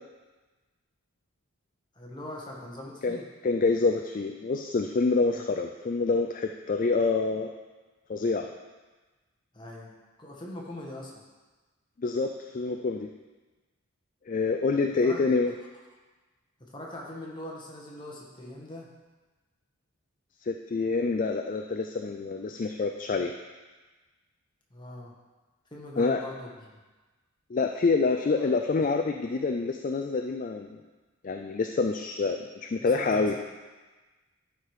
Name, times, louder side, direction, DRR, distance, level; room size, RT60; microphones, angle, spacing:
voice 1, 1.9-3.2 5.3-5.4 9.5-9.9 10.2-11.2 14.9-15.3 16.6-18.9 24.7-25.1 25.7-26.8 28.4-28.5 32.8-33.4, left 1 dB, 20° left, -2 dB, 1.3 m, -42 dB
voice 2, 3.4-7.5 8.1-8.5 12.0-13.1 14.3-15.5 20.4-23.3 26.0-26.2 27.5-30.8 31.2-33.4, left 4 dB, 35° left, 4 dB, 0.3 m, -27 dB
11.5 x 4.8 x 4.8 m, 1.3 s
head